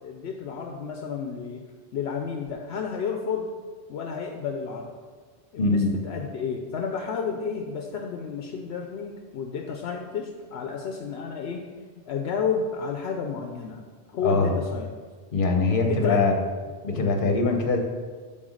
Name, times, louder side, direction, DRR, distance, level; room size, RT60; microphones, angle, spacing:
voice 1, 0.0-1.6 1.9-3.5 3.9-4.9 5.5-11.6 12.1-13.8 14.1-14.9 15.9-16.2, left 6 dB, 75° left, 3 dB, 0.9 m, -31 dB
voice 2, 5.6-6.0 14.2-14.6 15.3-16.4 16.8-17.8, left 3 dB, 55° left, 3 dB, 1.2 m, -22 dB
7.9 x 4.0 x 6.3 m, 1.5 s
omnidirectional pair, 1.1 m